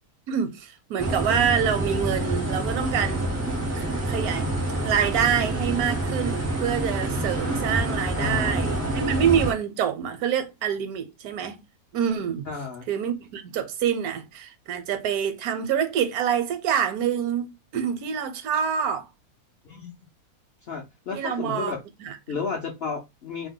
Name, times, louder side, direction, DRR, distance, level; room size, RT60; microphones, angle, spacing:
voice 1, 0.3-3.2 3.7-4.5 4.7-11.6 11.9-12.5 12.9-19.1 21.1-21.7 22.0-22.2, right 8 dB, 80° right, 1.1 m, -26 dB
sound 1, 1.0-9.5, right 1 dB, 25° right, 0.3 m, -27 dB
voice 2, 8.2-8.6 8.8-8.9 12.5-12.9 19.6-19.9 20.7-21.8 22.3-23.5, left 5 dB, 65° left, 0.6 m, -32 dB
2.7 x 2.1 x 3.6 m
omnidirectional pair, 1.6 m